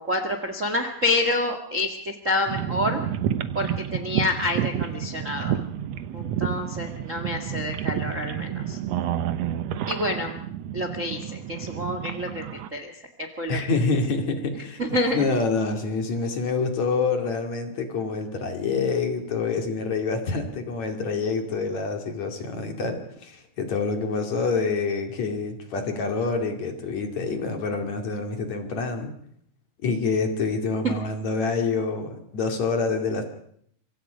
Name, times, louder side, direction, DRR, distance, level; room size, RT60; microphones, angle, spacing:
voice 1, 0.0-3.0 3.5-5.6 6.1-8.8 9.9-10.3 10.7-12.9 13.2-13.6 14.8-15.2, left 2 dB, 30° right, 6 dB, 1.5 m, -28 dB
sound 1, 2.5-12.7, right 10 dB, 70° right, 1.6 m, -30 dB
voice 2, 13.5-29.1 29.8-33.2, left 4 dB, 50° left, 4 dB, 3.6 m, -27 dB
27.0 x 24.5 x 5.2 m, 0.67 s
omnidirectional pair, 4.3 m